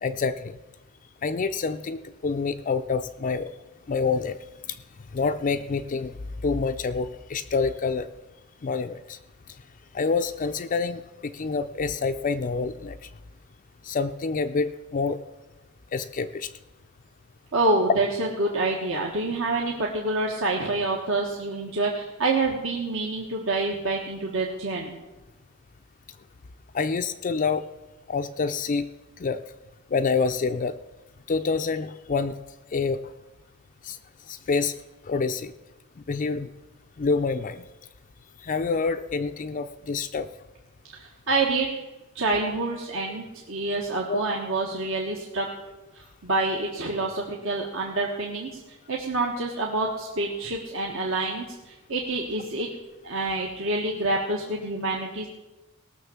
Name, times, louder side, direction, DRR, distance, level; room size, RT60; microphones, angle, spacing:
voice 1, 0.0-0.6 1.2-3.5 3.9-4.4 4.7-4.8 5.1-6.1 6.4-8.1 8.6-9.2 9.9-13.0 13.8-15.2 15.9-16.5 26.7-27.7 28.1-28.9 29.2-29.4 29.9-30.8 31.3-32.4 32.7-33.0 33.8-34.0 34.3-34.8 35.1-35.5 36.1-36.5 37.0-37.6 38.4-40.3 44.1-44.2, left 4 dB, 40° left, 7 dB, 0.4 m, -27 dB
voice 2, 17.5-25.0 41.0-41.7 42.1-45.5 45.9-48.6 48.9-52.7 53.0-55.3, right 2 dB, 65° right, -2 dB, 1.5 m, -27 dB
18.0 x 6.4 x 7.1 m, 1.1 s
head